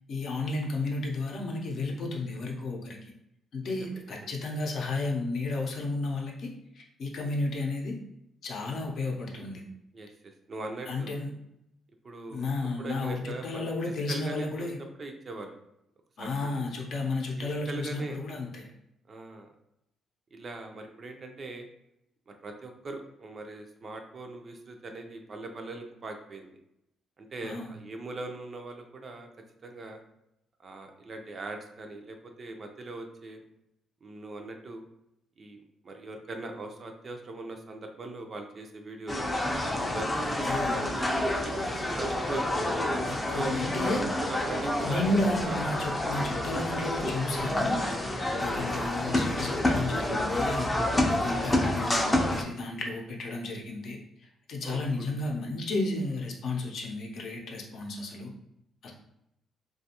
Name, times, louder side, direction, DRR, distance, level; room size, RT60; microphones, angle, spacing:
voice 1, 0.1-3.1 3.5-8.0 8.4-9.6 10.9-11.3 12.3-14.8 16.2-18.7 27.4-27.7 40.4-40.8 43.1-44.0 44.8-47.8 48.4-50.7 51.1-54.0 54.5-58.3 58.8-58.9, left 2 dB, 65° left, 1 dB, 0.6 m, -32 dB
voice 2, 3.6-4.0 9.9-11.2 12.0-12.4 12.8-14.7 15.0-15.6 16.2-16.7 17.4-18.2 19.1-19.5 20.3-21.7 22.3-26.5 27.2-29.3 29.6-30.0 30.6-33.4 34.0-34.8 35.4-35.6 35.8-39.3 39.9-42.7 43.3-43.6 43.8-45.9 48.5-48.9 54.6-54.8, right 2 dB, 45° right, 4 dB, 0.4 m, -40 dB
sound 1, 39.1-52.4, left 1 dB, 15° left, 0.4 m, -28 dB
2.5 x 2.3 x 2.8 m, 0.83 s
cardioid pair, 90°, 0 cm